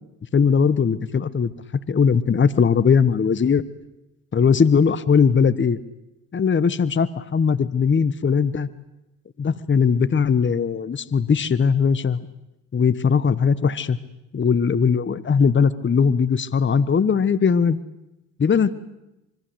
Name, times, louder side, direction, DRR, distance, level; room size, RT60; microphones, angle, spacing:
voice 1, 0.3-1.5 1.9-3.6 4.3-5.8 6.3-8.7 9.4-12.3 12.7-14.0 14.3-17.8 18.4-18.7, left 6 dB, 25° left, 15 dB, 1.3 m, -19 dB
26.0 x 24.0 x 8.1 m, 0.93 s
hypercardioid pair, 65°, 43 cm